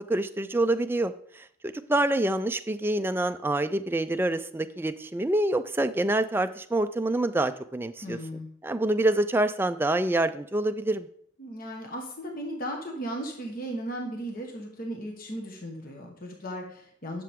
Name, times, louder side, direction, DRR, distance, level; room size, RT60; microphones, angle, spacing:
voice 1, 0.1-1.5 1.9-8.2 8.6-11.1, right 1 dB, 10° right, 9 dB, 0.3 m, -26 dB
voice 2, 8.0-8.5 11.4-17.2, equal, 40° left, 1 dB, 1.3 m, -36 dB
10.5 x 6.8 x 3.6 m, 0.66 s
head